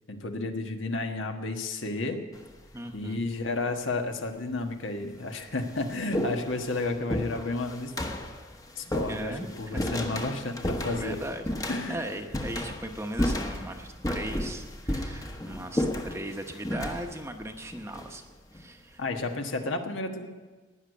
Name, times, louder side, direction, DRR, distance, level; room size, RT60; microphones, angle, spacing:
voice 1, 0.1-2.2 2.9-7.9 8.8-11.2 11.7-12.1 19.0-20.3, left 2 dB, 75° left, 4 dB, 1.4 m, -32 dB
sound 1, 2.3-2.8 3.7-3.8 4.7-4.8 5.1-18.7, left 1 dB, 15° left, 1.0 m, -33 dB
voice 2, 2.7-3.2 9.1-10.0 10.9-18.2 18.5-19.0, right 1 dB, 15° right, 5 dB, 0.9 m, -38 dB
18.5 x 6.5 x 9.4 m, 1.3 s
head